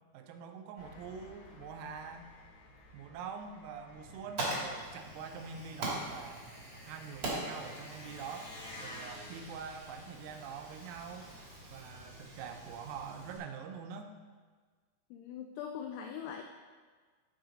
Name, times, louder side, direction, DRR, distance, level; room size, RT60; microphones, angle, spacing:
voice 1, 0.1-2.3 2.9-6.5 6.9-11.3 11.7-14.2, right 6 dB, 85° right, 5 dB, 3.4 m, -45 dB
Engine, 0.8-13.0, left 2 dB, 65° left, 2.2 m, -54 dB
Fire, 3.9-13.4, right 2 dB, 60° right, 1.4 m, -42 dB
voice 2, 15.1-16.4, left 8 dB, 90° left, 3 dB, 2.6 m, -41 dB
13.5 x 5.0 x 3.8 m, 1.5 s
omnidirectional pair, 5.9 m